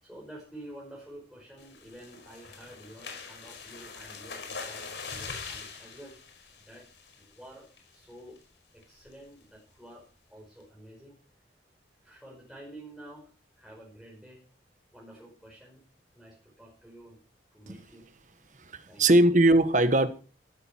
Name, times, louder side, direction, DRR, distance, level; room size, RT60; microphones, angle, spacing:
voice 1, 0.0-6.2 6.7-6.9 7.2-8.4 8.7-11.2 12.0-14.4 14.9-15.8 16.1-17.2 17.5-18.1 18.9-19.1, right 1 dB, ahead, 5.4 m, -49 dB
sound 1, 1.6-7.3 7.8-8.0 8.4-8.5 8.8-9.1, left 5 dB, 85° left, 5.1 m, -43 dB
voice 2, 18.6-20.1, right 1 dB, 45° right, 1.4 m, -21 dB
14.5 x 13.5 x 4.6 m
head